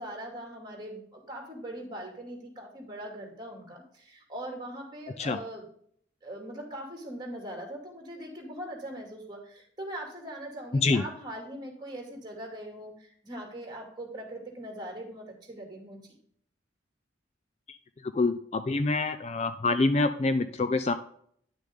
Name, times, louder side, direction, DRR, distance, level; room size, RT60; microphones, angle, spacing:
voice 1, 0.0-5.7 6.2-16.1, right 1 dB, 25° right, 1 dB, 2.5 m, -41 dB
voice 2, 18.1-20.9, left 3 dB, 35° left, 10 dB, 0.4 m, -26 dB
10.0 x 6.4 x 3.7 m, 0.63 s
head